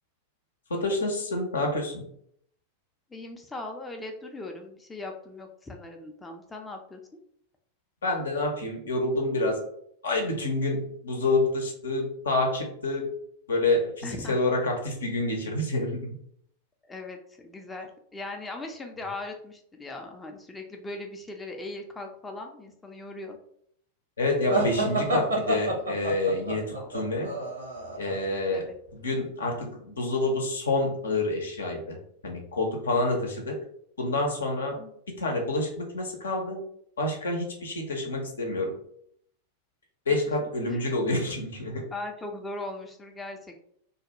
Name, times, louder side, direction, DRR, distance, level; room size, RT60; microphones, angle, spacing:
voice 1, 0.7-2.0 8.0-9.6 10.0-13.1 13.5-16.1 24.2-27.3 28.0-28.7 29.0-32.0 32.2-33.6 34.0-34.8 35.1-36.6 37.0-38.7 40.1-41.8, left 2 dB, 70° left, 2 dB, 0.6 m, -28 dB
voice 2, 3.1-7.2 14.0-14.4 16.8-23.4 26.7-27.0 28.5-28.8 34.8-35.0 40.4-40.9 41.9-43.6, left 2 dB, 10° left, 3 dB, 0.4 m, -39 dB
sound 1, 24.5-28.2, right 1 dB, 75° right, 0.8 m, -28 dB
2.3 x 2.1 x 2.9 m, 0.67 s
figure-of-eight pair, 90°, 0 cm